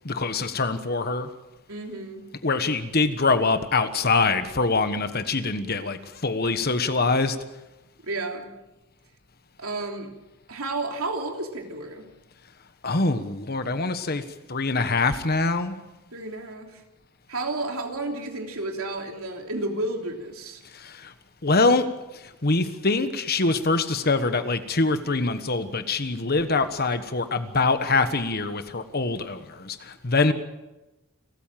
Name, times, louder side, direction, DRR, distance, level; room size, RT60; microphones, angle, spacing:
voice 1, 0.0-1.3 2.4-7.4 12.8-14.2 14.5-15.7 20.7-21.1 21.4-21.8 22.4-30.3, left 3 dB, 45° left, 10 dB, 1.3 m, -24 dB
voice 2, 1.7-2.3 8.0-8.5 9.6-10.1 10.5-12.1 16.1-16.8 17.3-20.6, right 2 dB, 70° right, 3 dB, 3.3 m, -31 dB
29.0 x 14.0 x 7.6 m, 1.0 s
head